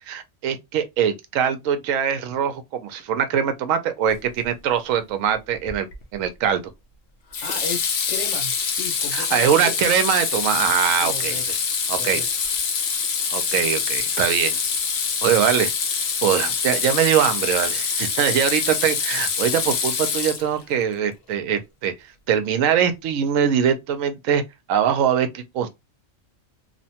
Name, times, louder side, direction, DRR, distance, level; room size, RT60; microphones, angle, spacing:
voice 1, 0.1-6.6 9.1-11.6 11.9-12.2 13.3-14.6 15.2-15.7 16.2-21.9 22.3-24.4 24.7-25.7, right 8 dB, 80° right, 1.0 m, -22 dB
Water tap faucet / Sink (filling or washing), 5.7-6.0 7.3-20.7, left 6 dB, 60° left, 0.7 m, -25 dB
voice 2, 7.4-9.8 11.0-11.7 11.9-12.3, left 4 dB, 80° left, 1.3 m, -35 dB
2.8 x 2.1 x 2.7 m
omnidirectional pair, 1.4 m